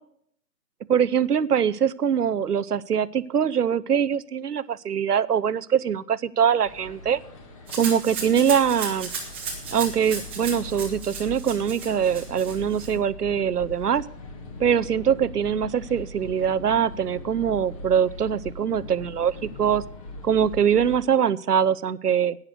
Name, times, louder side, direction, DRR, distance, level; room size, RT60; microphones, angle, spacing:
voice 1, 0.9-7.2 7.7-9.1 9.7-14.1 14.6-19.8 20.2-22.4, right 8 dB, 75° right, 18 dB, 0.7 m, -23 dB
sound 1, 6.6-21.0, left 2 dB, 20° left, 1.4 m, -41 dB
Rattle (instrument), 7.7-12.9, right 5 dB, 10° right, 0.8 m, -35 dB
11.5 x 9.6 x 6.4 m, 0.66 s
figure-of-eight pair, 150°, 48 cm